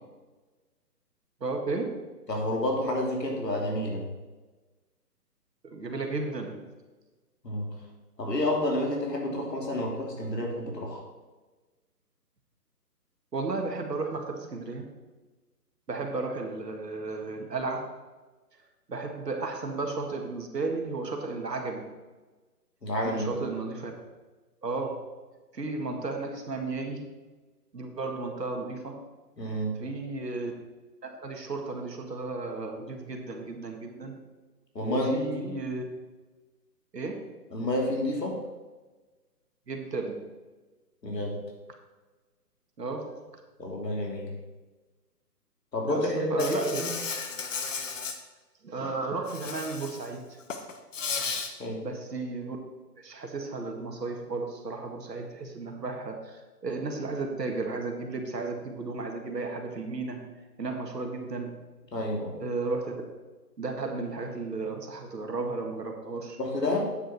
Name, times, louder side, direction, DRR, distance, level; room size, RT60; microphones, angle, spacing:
voice 1, 1.4-2.0 5.6-6.6 13.3-14.9 15.9-17.9 18.9-21.9 23.0-23.9 24.6-25.1 25.5-27.1 27.7-29.0 29.8-30.5 31.0-34.2 34.9-35.8 36.9-37.3 39.7-40.2 42.8-43.2 45.8-46.8 48.6-50.3 51.8-52.6 53.0-60.3 60.6-61.6 62.4-63.0 63.6-66.4, right 3 dB, 80° right, 3 dB, 2.1 m, -34 dB
voice 2, 2.3-4.0 7.4-7.7 8.2-11.0 22.8-23.4 29.4-29.8 34.7-35.6 37.5-38.4 41.0-41.4 43.6-44.3 45.7-46.9 51.6-51.9 61.9-62.3 66.4-66.9, left 1 dB, 80° left, -1 dB, 3.2 m, -29 dB
Insect, 46.4-48.2 49.3-50.1 50.4-51.5, left 5 dB, 50° left, 1.2 m, -34 dB
9.2 x 7.8 x 4.4 m, 1.2 s
figure-of-eight pair, 150°, 49 cm